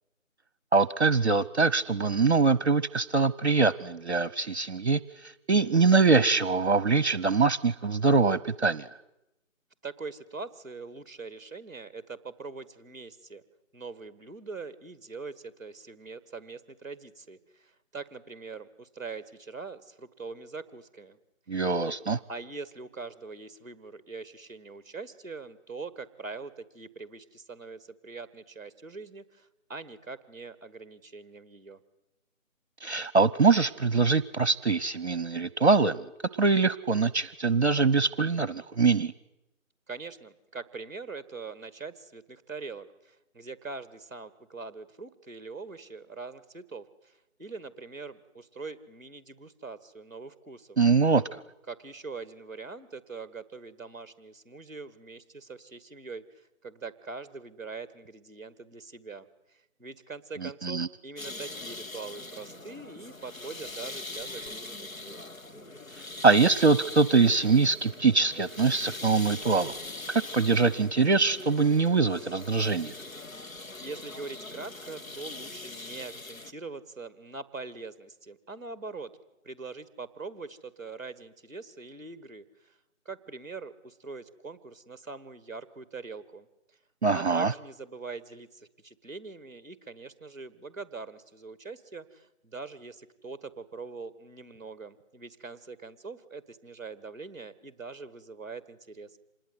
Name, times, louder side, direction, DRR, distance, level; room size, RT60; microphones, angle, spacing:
voice 1, 0.7-8.9 21.5-22.2 32.8-36.0 36.4-39.1 50.8-51.4 60.4-60.9 66.2-69.7 70.1-72.9 87.0-87.5, right 4 dB, 50° right, 19 dB, 0.9 m, -23 dB
voice 2, 9.8-13.4 13.7-21.2 22.3-31.8 39.9-50.8 51.7-65.2 73.8-79.1 79.4-82.8 83.0-86.8 87.1-99.2, right 4 dB, 15° right, 11 dB, 1.6 m, -43 dB
sound 1, 61.2-76.5, left 2 dB, 75° left, 2.2 m, -42 dB
26.5 x 20.5 x 9.6 m, 0.95 s
figure-of-eight pair, 165°, 41 cm